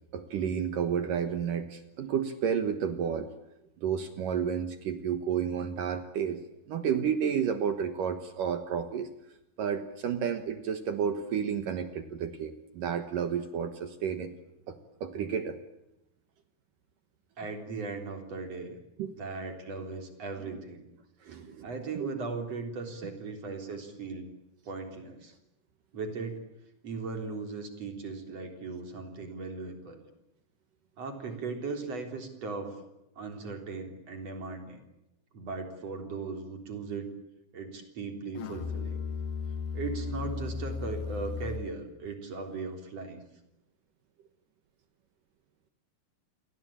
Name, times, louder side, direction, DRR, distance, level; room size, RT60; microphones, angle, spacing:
voice 1, 0.1-3.3 3.8-6.4 6.7-9.1 9.6-14.3 14.7-15.6 19.0-19.1 20.5-20.6 21.2-21.7, right 7 dB, 65° right, 9 dB, 2.6 m, -31 dB
voice 2, 17.4-18.8 19.2-20.9 21.6-24.3 24.6-25.3 25.9-26.4 26.8-30.0 31.0-32.8 33.2-34.8 35.3-37.1 37.5-39.0 39.7-43.2, right 4 dB, 40° right, 5 dB, 4.4 m, -38 dB
Musical instrument, 38.4-41.9, left 6 dB, 75° left, 2.9 m, -35 dB
30.0 x 23.0 x 8.8 m, 0.91 s
omnidirectional pair, 4.8 m